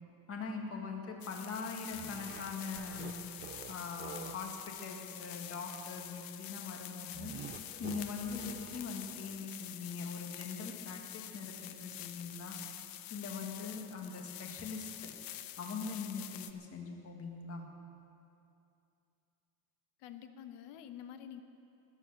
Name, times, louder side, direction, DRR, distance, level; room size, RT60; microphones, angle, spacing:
voice 1, 0.3-3.1 3.7-7.3 7.8-12.6 13.1-15.1 15.6-17.6, left 4 dB, 35° left, 2 dB, 1.9 m, -42 dB
sound 1, 1.2-16.5, left 13 dB, 55° left, 0.8 m, -47 dB
sound 2, 1.9-4.5 7.1-9.4, right 8 dB, 25° right, 0.4 m, -49 dB
voice 2, 20.0-21.4, left 9 dB, 90° left, 9 dB, 1.1 m, -48 dB
20.0 x 7.9 x 7.3 m, 2.6 s
cardioid pair, 160°, 41 cm